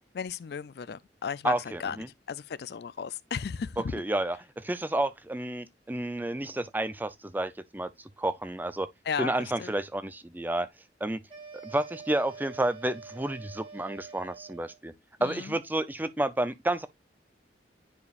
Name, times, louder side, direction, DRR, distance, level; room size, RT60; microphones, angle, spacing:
voice 1, 0.1-1.5 1.8-2.0 2.3-3.9 9.1-9.3 9.6-9.7 15.2-15.5, left 6 dB, 60° left, 0.4 m, -34 dB
voice 2, 1.4-2.1 3.8-7.9 8.2-8.9 9.2-10.7 11.0-11.2 11.6-14.9 15.2-16.9, right 1 dB, 10° right, 0.5 m, -30 dB
sound 1, 11.3-14.8, right 5 dB, 30° right, 1.7 m, -46 dB
9.6 x 5.0 x 2.4 m
head